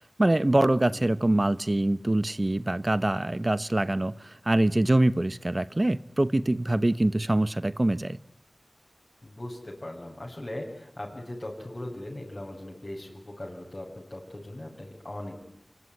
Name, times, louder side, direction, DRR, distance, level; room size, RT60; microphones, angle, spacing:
voice 1, 0.2-8.2, right 1 dB, 40° right, 1.0 m, -24 dB
voice 2, 0.8-1.1 9.2-15.4, left 1 dB, 45° left, 7.2 m, -39 dB
25.5 x 22.0 x 9.8 m
wide cardioid pair, 40°, 0 cm